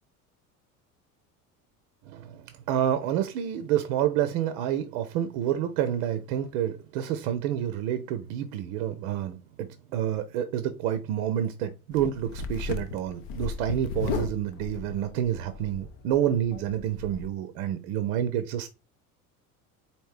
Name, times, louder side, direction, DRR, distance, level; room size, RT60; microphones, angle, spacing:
voice 1, 2.1-18.7, right 10 dB, 60° right, 0.6 m, -28 dB
sound 1, 11.9-17.3, left 6 dB, 55° left, 0.7 m, -36 dB
4.3 x 2.7 x 3.3 m
figure-of-eight pair, 65°, 45 cm